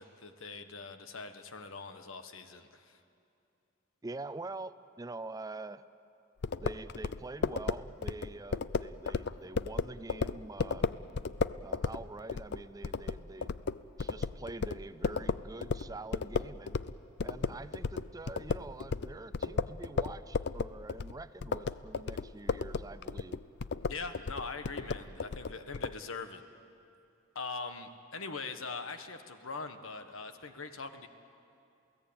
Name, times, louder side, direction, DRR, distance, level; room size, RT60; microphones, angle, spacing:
voice 1, 0.0-3.0 23.9-26.4 27.3-31.1, left 4 dB, 90° left, 8 dB, 1.4 m, -42 dB
voice 2, 4.0-5.8 6.6-10.9 11.6-13.5 14.0-16.8 17.2-23.4, right 2 dB, 20° right, 14 dB, 0.5 m, -45 dB
sound 1, 6.4-16.9 17.2-25.9, left 4 dB, 55° left, 0.5 m, -34 dB
28.0 x 17.0 x 8.8 m, 2.6 s
head